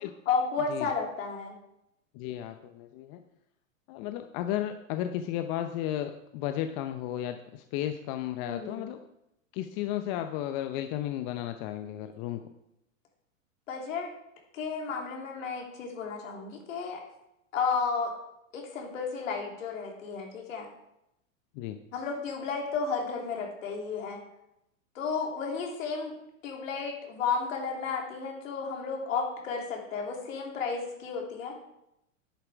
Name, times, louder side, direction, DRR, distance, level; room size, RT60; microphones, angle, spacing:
voice 1, 0.3-1.6 8.4-8.9 13.7-14.1 14.5-17.0 17.5-18.1 18.5-20.7 21.9-24.2 24.9-26.1 26.4-31.6, left 5 dB, 70° left, 1 dB, 3.1 m, -32 dB
voice 2, 2.1-3.2 3.9-9.0 9.5-12.4 21.5-21.8, left 12 dB, 40° left, 8 dB, 0.8 m, -34 dB
10.5 x 8.8 x 4.8 m, 0.84 s
hypercardioid pair, 110°, 40 cm